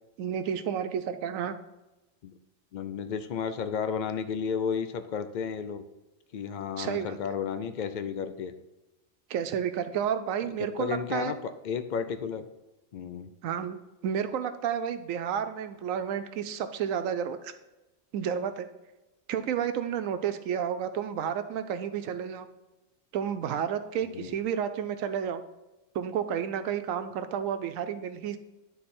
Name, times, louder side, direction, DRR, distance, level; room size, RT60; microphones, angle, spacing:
voice 1, 0.2-1.5 6.8-7.2 9.3-11.3 13.4-17.5 18.1-18.7 19.3-22.5 23.1-25.4 25.9-28.4, right 8 dB, 80° right, 10 dB, 1.0 m, -31 dB
voice 2, 2.7-5.8 6.3-8.5 10.8-11.4 11.6-12.5 12.9-13.3 24.1-24.4, left 6 dB, 60° left, 10 dB, 0.5 m, -32 dB
10.0 x 3.9 x 4.3 m, 1.0 s
omnidirectional pair, 1.4 m